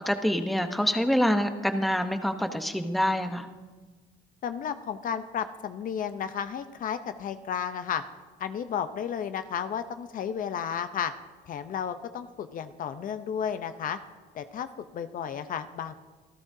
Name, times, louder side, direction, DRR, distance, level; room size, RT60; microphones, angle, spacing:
voice 1, 0.1-3.5, equal, ahead, 7 dB, 1.0 m, -26 dB
voice 2, 4.4-8.0 8.4-11.1 11.5-14.0 14.3-14.7 14.9-15.9, left 8 dB, 55° left, 10 dB, 0.7 m, -33 dB
26.0 x 13.5 x 2.8 m, 1.3 s
cardioid pair, 110°, 17 cm